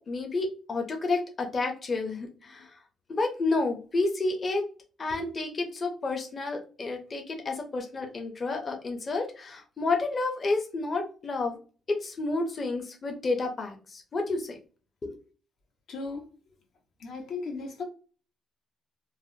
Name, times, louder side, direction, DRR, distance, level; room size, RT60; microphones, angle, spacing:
voice 1, 0.1-2.7 3.1-4.6 5.0-11.6 11.9-14.6 15.0-15.2, left 3 dB, 40° left, 0.6 m, -30 dB
voice 2, 15.9-16.3 17.0-17.8, left 4 dB, 75° left, 0.8 m, -36 dB
3.2 x 2.1 x 2.7 m
cardioid pair, 90°, 0 cm